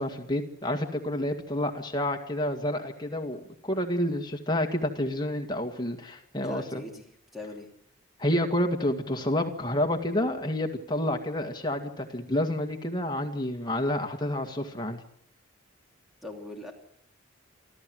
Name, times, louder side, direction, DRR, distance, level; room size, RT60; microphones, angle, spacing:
voice 1, 0.0-6.8 8.2-15.0, left 1 dB, 20° left, 4 dB, 2.0 m, -29 dB
voice 2, 6.4-7.1 7.3-7.7 16.2-16.7, left 1 dB, ahead, 1 dB, 2.9 m, -40 dB
28.5 x 13.0 x 7.8 m, 0.71 s
head